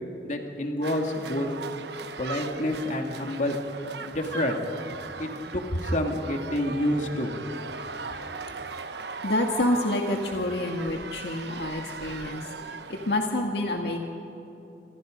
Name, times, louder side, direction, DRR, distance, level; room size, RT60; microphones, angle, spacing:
voice 1, 0.2-1.5 2.2-3.6 3.9-4.6 5.2-7.4, left 1 dB, 45° left, 3 dB, 2.6 m, -28 dB
sound 1, 0.8-13.1, right 4 dB, 70° right, 1.2 m, -39 dB
voice 2, 8.7-14.0, left 1 dB, 65° left, 2 dB, 1.9 m, -28 dB
28.0 x 26.5 x 5.3 m, 2.9 s
head